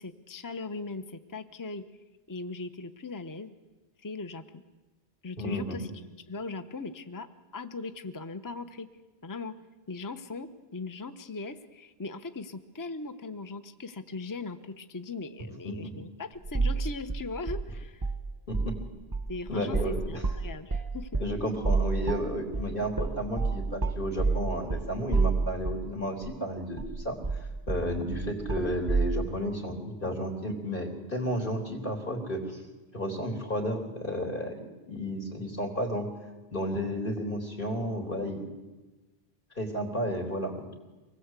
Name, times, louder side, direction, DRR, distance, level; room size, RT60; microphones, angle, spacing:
voice 1, 0.0-1.8 2.3-3.5 4.0-4.6 5.2-5.9 6.3-7.3 7.5-8.9 9.2-9.6 9.9-18.1 19.3-21.1, left 3 dB, 20° left, 9 dB, 0.9 m, -39 dB
voice 2, 5.4-5.8 15.6-16.0 18.5-18.8 19.5-20.2 21.2-32.6 32.9-36.1 36.5-38.4 39.6-40.8, equal, 50° left, 2 dB, 4.0 m, -32 dB
sound 1, 16.4-16.8 17.1-18.2 18.5-18.8 19.1-25.9 26.2-26.3 26.8-29.1, right 4 dB, 20° right, 1.0 m, -29 dB
25.0 x 19.5 x 8.3 m, 1.2 s
omnidirectional pair, 1.2 m